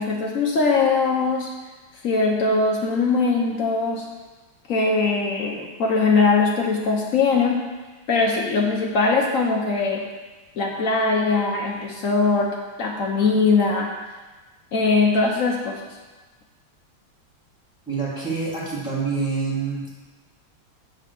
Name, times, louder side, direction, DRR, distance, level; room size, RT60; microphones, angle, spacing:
voice 1, 0.0-1.5 2.0-4.1 4.7-7.6 8.1-10.0 10.6-12.5 12.8-13.9 14.7-15.8, left 4 dB, 65° left, 0 dB, 0.8 m, -21 dB
voice 2, 17.9-19.9, right 5 dB, ahead, -7 dB, 2.4 m, -26 dB
7.4 x 4.2 x 6.7 m, 1.2 s
omnidirectional pair, 2.3 m